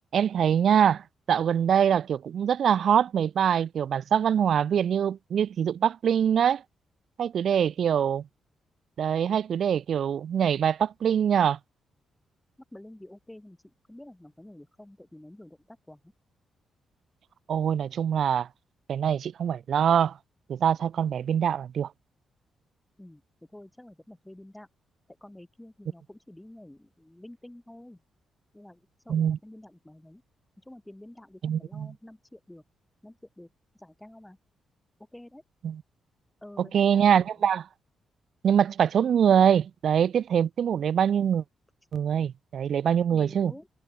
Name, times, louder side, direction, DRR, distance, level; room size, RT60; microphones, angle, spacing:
voice 1, 0.1-6.6 7.2-8.3 9.0-11.6 17.5-18.5 18.9-20.2 20.5-21.9 29.1-29.4 31.4-31.9 35.6-35.8 36.6-37.7 38.4-41.4 41.9-43.5, right 8 dB, 65° right, 0.4 m, -24 dB
voice 2, 7.5-7.9 12.7-16.1 23.0-23.2 23.5-24.7 25.2-28.0 28.5-30.2 30.6-32.6 33.0-34.4 35.1-35.4 36.4-37.3 43.1-43.7, left 1 dB, 10° left, 6.1 m, -49 dB
hypercardioid pair, 45°, 0 cm